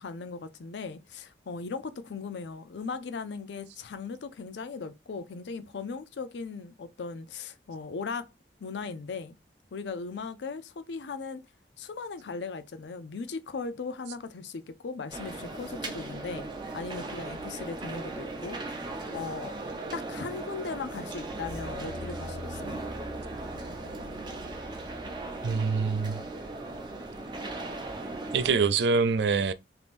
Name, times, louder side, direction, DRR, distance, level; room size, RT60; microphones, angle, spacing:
voice 1, 0.0-8.3 8.6-9.4 9.7-11.4 11.8-16.5 16.7-18.9 19.1-19.6 19.9-22.8, left 4 dB, 85° left, 0.5 m, -38 dB
sound 1, 15.1-28.5, right 2 dB, 25° right, 0.6 m, -38 dB
sound 2, 21.2-25.5 26.0-26.1, left 1 dB, 55° left, 0.8 m, -44 dB
voice 2, 25.4-26.2 28.3-29.5, right 5 dB, 80° right, 0.4 m, -25 dB
3.4 x 2.9 x 2.5 m
head